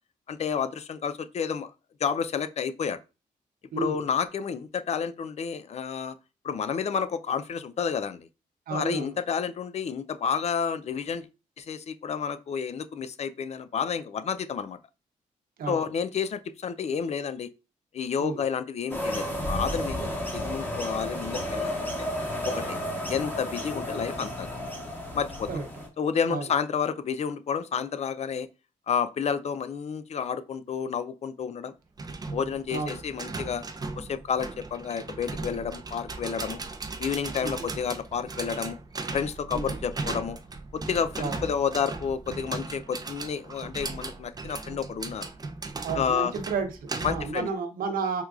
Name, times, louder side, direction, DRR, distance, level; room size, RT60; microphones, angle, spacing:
voice 1, 0.3-1.7 2.0-3.0 3.8-6.2 6.4-8.3 8.7-11.3 11.6-14.8 15.7-17.5 17.9-21.9 22.4-22.8 23.1-24.5 25.1-25.5 26.0-28.5 28.9-31.7 32.3-33.6 34.0-36.6 37.0-38.8 39.1-40.4 40.7-45.3 45.9-46.3 47.0-47.5, left 7 dB, 50° left, 0.4 m, -30 dB
voice 2, 3.7-4.1 8.7-9.2 15.6-15.8 18.2-18.5 20.0-20.1 25.5-25.7 26.3-26.5 32.7-33.0 37.4-37.7 39.5-39.8 41.2-41.4 45.8-48.2, right 4 dB, 80° right, 0.7 m, -32 dB
sound 1, 18.9-25.9, equal, 15° left, 1.1 m, -32 dB
sound 2, 32.0-47.4, right 3 dB, 25° right, 0.5 m, -37 dB
4.4 x 2.3 x 2.3 m
cardioid pair, 70°, 14 cm